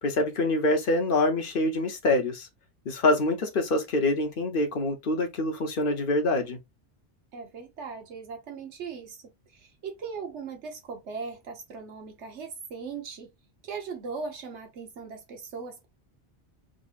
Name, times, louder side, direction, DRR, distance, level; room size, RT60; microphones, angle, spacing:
voice 1, 0.0-2.5 2.8-6.6, left 2 dB, 55° left, 1.1 m, -25 dB
voice 2, 7.3-9.2 9.5-13.3 13.6-15.9, right 5 dB, 85° right, 1.2 m, -39 dB
5.1 x 2.8 x 2.5 m
omnidirectional pair, 1.1 m